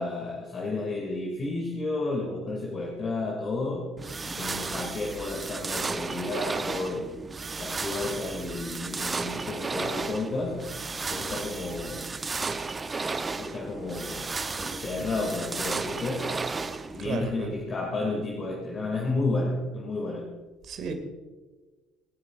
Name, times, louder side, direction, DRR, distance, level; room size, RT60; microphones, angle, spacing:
voice 1, 0.0-3.9 4.2-7.1 7.6-10.7 11.1-12.1 13.3-16.3 16.9-20.3, left 2 dB, 35° left, 0 dB, 2.6 m, -32 dB
sound 1, 4.0-17.1, right 4 dB, 25° right, 0.8 m, -34 dB
voice 2, 17.0-17.5 20.7-20.9, right 5 dB, 50° right, 5 dB, 2.3 m, -33 dB
27.5 x 9.7 x 2.5 m, 1.3 s
figure-of-eight pair, 60°, 0 cm